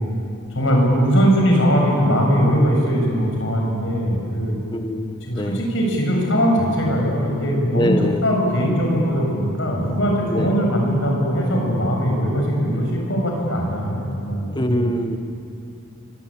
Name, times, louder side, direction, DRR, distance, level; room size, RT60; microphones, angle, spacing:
voice 1, 0.5-4.6 5.3-8.0 8.2-14.8, equal, 65° left, 0 dB, 7.2 m, -20 dB
voice 2, 4.7-5.6 7.7-8.3 10.3-10.6 14.5-15.2, left 1 dB, 20° left, 7 dB, 1.2 m, -24 dB
25.0 x 24.5 x 8.9 m, 2.7 s
head